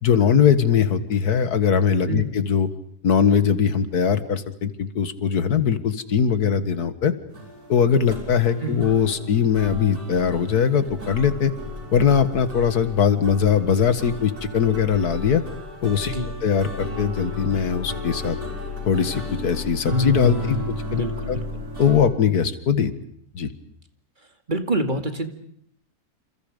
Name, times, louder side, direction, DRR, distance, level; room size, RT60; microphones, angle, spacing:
voice 1, 0.0-2.7 3.0-7.1 7.7-11.5 11.9-15.4 15.8-16.1 16.4-18.4 18.9-21.4 21.8-22.9 23.3-23.5, left 7 dB, 85° left, 11 dB, 2.1 m, -21 dB
voice 2, 2.1-2.4 8.6-8.9 16.0-16.3 19.9-21.6 24.5-25.3, right 1 dB, 30° right, 6 dB, 2.3 m, -27 dB
sound 1, 7.3-22.0, left 1 dB, 75° right, 6.3 m, -34 dB
28.5 x 28.5 x 5.2 m, 0.66 s
omnidirectional pair, 1.6 m